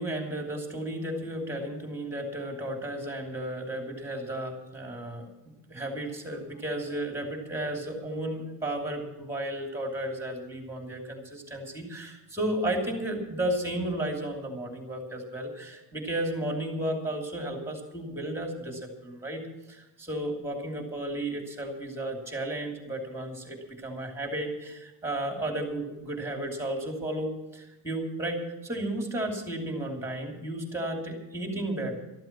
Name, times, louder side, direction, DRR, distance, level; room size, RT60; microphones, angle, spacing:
voice 1, 0.0-5.3 5.7-19.4 19.7-32.0, right 1 dB, 5° right, 2 dB, 2.8 m, -33 dB
13.5 x 12.5 x 6.0 m, 1.0 s
cardioid pair, 165°, 44 cm